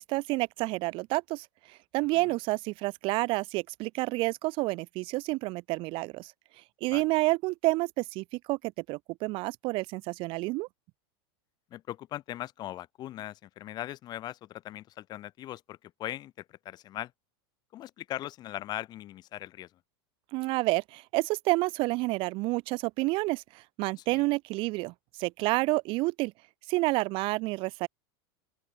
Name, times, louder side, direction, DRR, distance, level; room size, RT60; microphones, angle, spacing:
voice 1, 0.0-1.5 1.9-6.3 6.8-8.6 8.9-10.7 20.3-23.4 23.8-24.9 25.2-26.3 26.7-27.9, right 22 dB, 40° right, 1.0 m, -29 dB
voice 2, 11.7-17.1 17.7-19.7 24.0-24.2, left 13 dB, 30° left, 2.9 m, -40 dB
open air
supercardioid pair, 155°, 13 cm